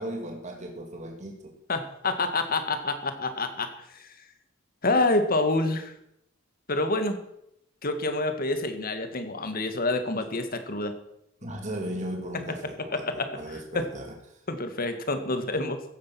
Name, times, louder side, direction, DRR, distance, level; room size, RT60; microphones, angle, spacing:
voice 1, 0.0-1.4 11.4-14.4, right 1 dB, 40° right, 2 dB, 2.4 m, -36 dB
voice 2, 1.7-4.1 4.8-5.9 6.7-7.2 7.8-10.9 12.8-13.9 14.5-15.8, left 2 dB, 50° left, 8 dB, 1.9 m, -28 dB
15.5 x 10.5 x 6.1 m, 0.77 s
head